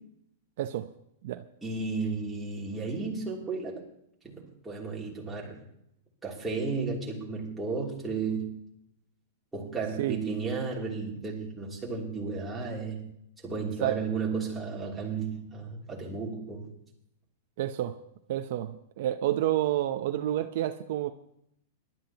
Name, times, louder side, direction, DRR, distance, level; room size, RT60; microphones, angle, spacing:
voice 1, 0.6-0.9 1.2-1.4 10.0-10.2 13.8-14.0 17.6-18.0 18.3-21.1, right 13 dB, 55° right, 9 dB, 0.7 m, -29 dB
voice 2, 1.6-3.8 4.2-5.6 6.2-8.6 9.5-13.1 13.4-16.7, right 4 dB, 5° right, -4 dB, 2.9 m, -33 dB
23.0 x 12.0 x 2.9 m, 0.76 s
supercardioid pair, 165°, 0 cm